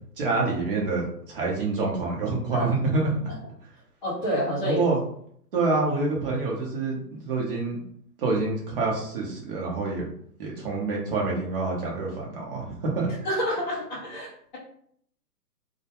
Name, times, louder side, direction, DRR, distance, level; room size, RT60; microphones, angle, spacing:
voice 1, 0.2-3.1 4.6-5.0 5.5-7.8 8.2-10.1 10.4-13.1, right 3 dB, 35° right, -3 dB, 0.7 m, -27 dB
voice 2, 4.0-4.8 13.2-14.6, equal, 30° left, -7 dB, 0.4 m, -28 dB
2.2 x 2.1 x 2.8 m, 0.65 s
hypercardioid pair, 145°, 50 cm